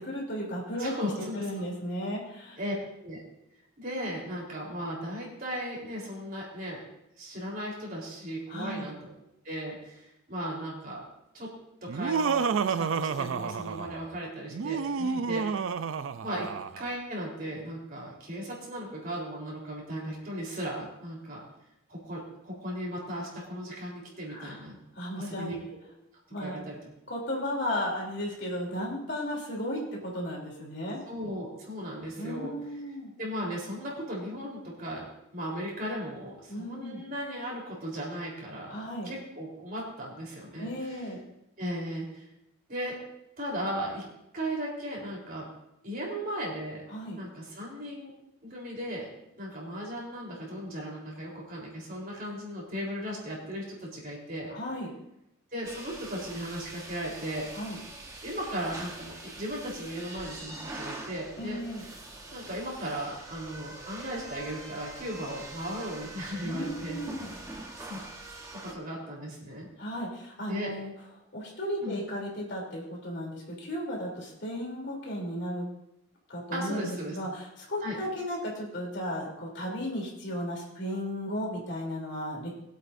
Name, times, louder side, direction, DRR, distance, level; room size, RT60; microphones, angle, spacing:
voice 1, 0.1-0.9 1.3-2.6 8.5-8.9 15.0-15.2 24.3-24.6 24.9-25.5 26.3-26.6 27.1-31.0 32.2-33.1 36.5-37.0 38.7-39.1 40.6-41.2 46.9-47.2 54.5-54.9 57.5-57.8 61.4-61.8 66.4-67.3 69.8-70.9 71.3-75.7 76.3-82.5, equal, 55° left, -2 dB, 3.3 m, -35 dB
voice 2, 0.8-1.5 2.6-2.7 3.0-3.2 3.8-6.8 7.2-9.1 9.4-11.0 11.3-11.5 11.8-15.5 16.2-21.4 21.9-24.8 25.2-25.6 26.4-26.8 31.1-32.5 33.2-35.1 35.3-41.1 41.6-42.2 42.7-43.0 43.4-44.1 44.3-45.5 45.8-46.8 47.1-48.1 48.4-49.1 49.4-54.5 55.5-57.5 58.2-61.6 62.3-67.0 67.8-68.0 68.5-69.7 70.4-70.7 71.8-72.0 76.5-77.2 77.8-78.0, equal, 40° right, -3 dB, 3.9 m, -36 dB
Laughter, 11.9-14.0 14.5-16.8, right 5 dB, 70° right, 0.4 m, -30 dB
sound 1, 55.6-68.7, right 2 dB, 15° right, 1.1 m, -44 dB
21.5 x 8.4 x 2.7 m, 0.85 s
head